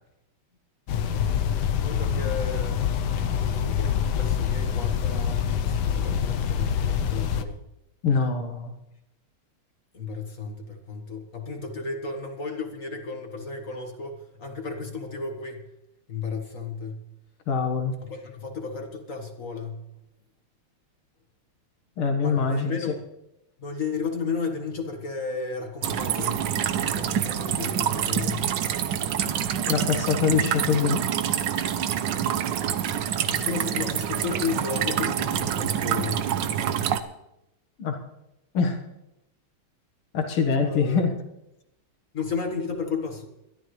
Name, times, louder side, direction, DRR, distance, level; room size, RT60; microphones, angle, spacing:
sound 1, 0.9-7.4, left 8 dB, 65° left, 1.2 m, -25 dB
voice 1, 1.1-1.5 1.8-2.9 3.4-7.6 9.9-15.7 16.1-17.1 18.0-19.9 22.2-23.0 23.6-26.5 26.8-28.5 33.3-36.3 40.6-41.1 42.1-43.3, left 4 dB, 40° left, 4 dB, 1.7 m, -33 dB
voice 2, 8.0-8.7 17.5-17.9 22.0-22.8 29.7-31.1 37.8-38.0 38.5-38.8 40.1-41.1, left 5 dB, 85° left, 4 dB, 2.5 m, -24 dB
sound 2, 25.8-37.0, right 9 dB, 65° right, 1.3 m, -26 dB
21.5 x 13.0 x 3.2 m, 0.86 s
omnidirectional pair, 2.3 m